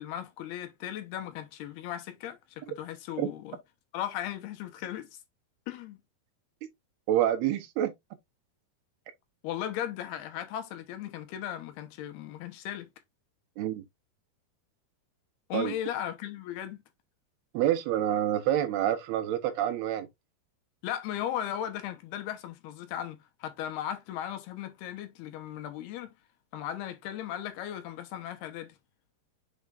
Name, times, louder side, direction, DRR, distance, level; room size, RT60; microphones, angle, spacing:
voice 1, 0.0-3.6 3.9-5.2 5.7-6.0 9.4-12.9 15.5-16.8 20.8-26.1 26.5-28.7, left 11 dB, 80° left, 3.0 m, -37 dB
voice 2, 7.1-7.9 13.6-13.8 15.5-15.7 17.5-20.1, right 11 dB, 75° right, 2.9 m, -27 dB
7.3 x 5.1 x 2.5 m
omnidirectional pair, 4.7 m